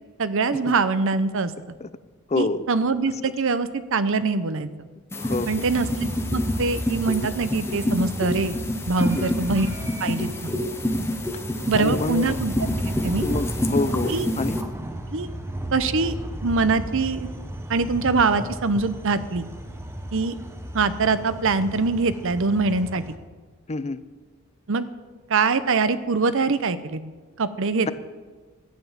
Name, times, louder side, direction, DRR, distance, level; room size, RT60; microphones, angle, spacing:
voice 1, 0.2-1.5 2.4-4.9 5.5-8.6 8.9-9.7 10.0-10.6 11.7-12.5 13.0-13.3 14.1-14.3 15.1-15.3 15.7-16.2 16.4-17.3 17.7-19.4 20.1-20.4 20.7-23.0 24.7-24.9 25.3-27.0 27.4-27.9, right 4 dB, 65° right, 13 dB, 0.8 m, -23 dB
voice 2, 2.3-2.7 5.2-5.5 9.1-9.3 11.8-12.3 13.2-14.6 23.7-24.0, left 3 dB, 30° left, 14 dB, 0.5 m, -27 dB
sound 1, 5.1-14.6, left 1 dB, 10° left, 1.0 m, -28 dB
sound 2, 5.2-23.2, right 1 dB, 10° right, 0.9 m, -34 dB
13.5 x 9.4 x 7.3 m, 1.4 s
head